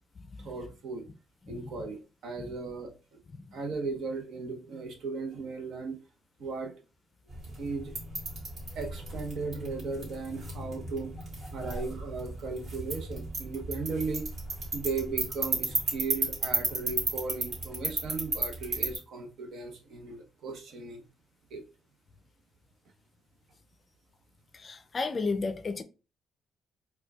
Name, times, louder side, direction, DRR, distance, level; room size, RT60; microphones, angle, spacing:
voice 1, 0.4-1.0 1.5-2.9 3.5-6.0 6.4-6.7 7.6-7.9 8.7-11.1 11.5-14.3 14.7-21.1 21.5-21.6, right 4 dB, 75° right, 0.8 m, -36 dB
sound 1, 7.3-19.0, right 2 dB, 55° right, 1.9 m, -34 dB
voice 2, 24.5-25.8, left 4 dB, 40° left, 0.4 m, -33 dB
4.5 x 2.3 x 2.3 m
cardioid pair, 90°, 0 cm